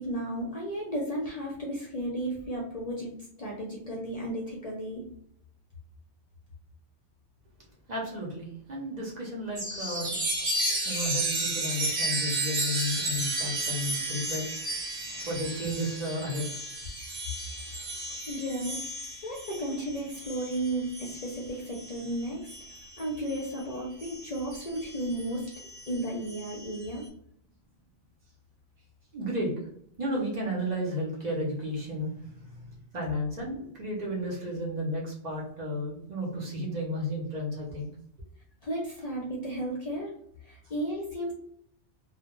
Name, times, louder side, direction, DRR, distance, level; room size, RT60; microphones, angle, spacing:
voice 1, 0.0-3.1 3.4-5.0 18.3-18.8 19.2-22.6 23.0-25.5 25.9-27.0 38.6-40.1 40.4-41.3, right 1 dB, 50° left, -3 dB, 0.5 m, -34 dB
voice 2, 7.9-10.2 10.8-16.5 29.1-29.5 30.0-32.7 32.9-37.9, equal, 45° right, -4 dB, 0.7 m, -33 dB
Chime, 9.6-23.5 24.0-26.8, right 2 dB, 75° right, 0.9 m, -33 dB
2.1 x 2.1 x 2.9 m, 0.69 s
omnidirectional pair, 1.1 m